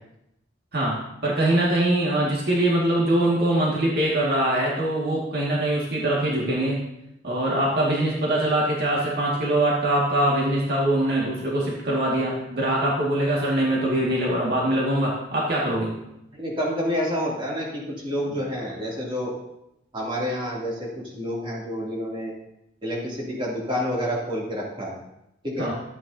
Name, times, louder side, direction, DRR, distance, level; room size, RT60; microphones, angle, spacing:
voice 1, 0.7-6.8 7.2-16.0 25.6-25.7, right 1 dB, 60° right, -4 dB, 2.0 m, -23 dB
voice 2, 16.3-19.3 19.9-22.3 22.8-25.0 25.4-25.7, equal, 30° right, -5 dB, 2.7 m, -28 dB
13.0 x 8.8 x 2.8 m, 0.84 s
head